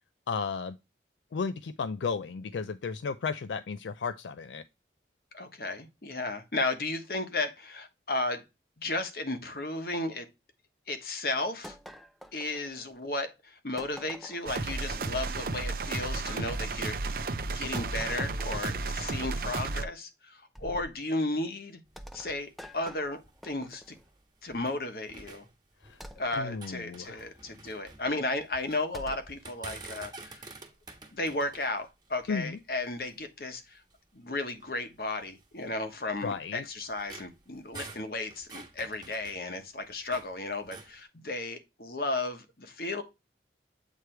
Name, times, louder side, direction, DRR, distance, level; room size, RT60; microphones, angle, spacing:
voice 1, 0.3-0.8 1.3-4.6 25.8-26.0 26.4-27.3 32.3-32.6 36.2-36.7, left 5 dB, 80° left, 0.4 m, -34 dB
voice 2, 5.3-8.4 8.8-10.3 10.9-11.8 12.3-17.1 17.4-21.8 22.1-24.0 24.4-25.5 26.2-30.4 31.1-33.8 34.1-43.0, left 2 dB, 55° left, 1.1 m, -34 dB
sound 1, 11.6-13.1 13.8-14.6 16.3-16.5 17.7-18.9 20.6-21.0 22.0-24.1 26.0-26.5 28.9-29.3, equal, ahead, 0.4 m, -47 dB
sound 2, 14.5-19.8, right 3 dB, 50° right, 0.6 m, -33 dB
sound 3, 21.8-24.8 25.1-26.2 26.5-28.8 29.3-33.3 33.9-34.0 34.5-34.6 35.4-40.3 40.6-41.0, right 3 dB, 25° right, 1.4 m, -49 dB
8.2 x 3.2 x 4.5 m
head